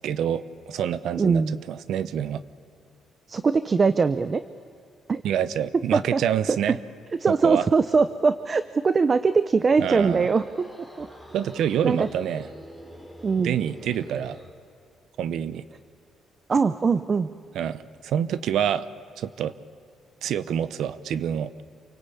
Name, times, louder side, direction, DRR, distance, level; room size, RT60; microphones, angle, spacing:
voice 1, 0.0-2.4 5.2-6.8 7.3-7.6 9.8-10.3 11.3-12.5 13.4-14.4 15.2-15.6 17.5-18.9 19.2-19.5 20.2-21.5, right 9 dB, 75° right, 15 dB, 0.8 m, -27 dB
voice 2, 1.2-1.6 3.3-4.4 5.1-5.2 5.9-6.2 6.5-6.8 7.2-10.7 11.0-11.1 11.8-12.1 13.2-13.6 16.5-17.3, right 4 dB, 30° right, 13 dB, 0.6 m, -22 dB
sound 1, 9.6-14.6, equal, 10° right, 3.2 m, -45 dB
28.0 x 19.0 x 8.5 m, 2.5 s
cardioid pair, 115°, 0 cm